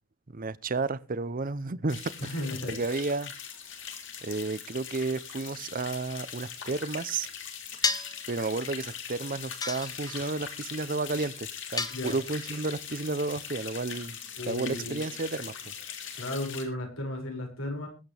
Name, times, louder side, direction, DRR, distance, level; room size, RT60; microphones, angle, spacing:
voice 1, 0.3-2.3 2.7-3.3 4.2-7.3 8.3-14.2 14.5-15.7, right 3 dB, 40° right, 0.7 m, -32 dB
sound 1, 1.9-16.6, left 8 dB, 60° left, 3.3 m, -41 dB
voice 2, 2.2-2.8 11.9-12.2 14.4-15.0 16.1-17.9, left 1 dB, 80° left, 6.1 m, -34 dB
sound 2, 7.8-8.2 9.6-10.3 11.8-12.5, left 4 dB, 20° left, 1.0 m, -31 dB
21.0 x 8.7 x 3.4 m
head